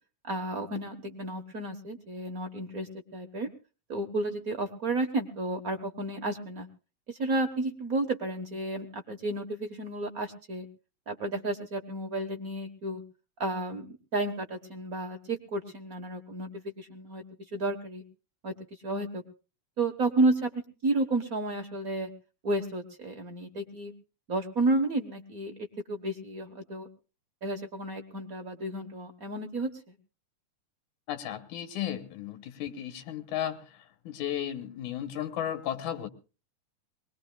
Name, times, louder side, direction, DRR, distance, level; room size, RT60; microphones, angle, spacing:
voice 1, 0.2-3.5 3.9-6.7 7.1-10.7 11.1-13.0 13.4-17.2 17.5-18.0 18.4-18.5 18.8-19.2 19.8-22.1 22.4-23.9 24.3-25.5 25.9-26.9 27.4-29.9, right 2 dB, 45° right, 4 dB, 1.1 m, -32 dB
voice 2, 31.1-36.1, left 10 dB, 85° left, 9 dB, 2.7 m, -34 dB
23.0 x 20.5 x 2.3 m, 0.33 s
omnidirectional pair, 3.4 m